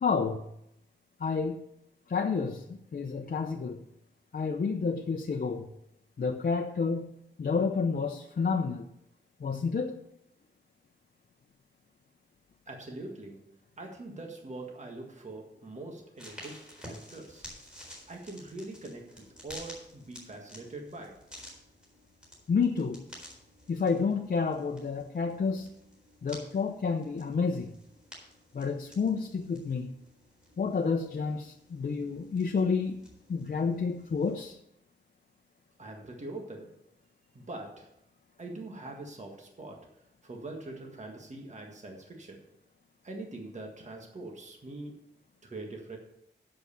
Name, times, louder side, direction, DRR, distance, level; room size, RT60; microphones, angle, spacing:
voice 1, 0.0-0.4 1.2-1.6 2.1-3.8 4.3-5.7 6.2-7.1 7.4-8.8 9.4-10.0 22.5-23.0 23.7-25.7 26.2-27.7 28.5-29.9 30.6-33.0 33.3-34.6, left 5 dB, 50° left, 4 dB, 0.7 m, -29 dB
voice 2, 12.7-17.4 18.1-21.2 35.8-36.8 37.3-37.9 38.4-42.4 43.0-45.0 45.4-46.0, right 2 dB, 40° right, 1 dB, 1.7 m, -43 dB
sound 1, 16.2-34.5, equal, 5° right, 4.1 m, -52 dB
8.2 x 7.6 x 6.9 m, 0.79 s
wide cardioid pair, 125°, 19 cm